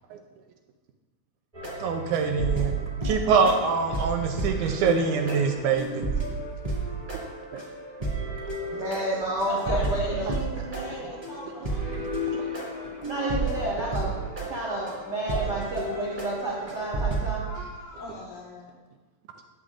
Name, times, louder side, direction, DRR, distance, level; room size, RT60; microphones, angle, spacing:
sound 1, 1.5-17.3, right 2 dB, 15° right, 1.2 m, -32 dB
voice 1, 1.8-2.8 3.0-6.2 7.5-7.6 12.3-12.4, right 5 dB, 80° right, 5 dB, 1.9 m, -24 dB
voice 2, 8.7-10.3 13.0-14.2 14.5-17.5, right 1 dB, 50° right, -6 dB, 1.2 m, -30 dB
voice 3, 9.5-13.7 14.9-15.4 15.8-16.6 17.4-18.8, left 1 dB, 85° left, -5 dB, 3.6 m, -41 dB
11.0 x 7.8 x 2.5 m, 1.2 s
omnidirectional pair, 3.9 m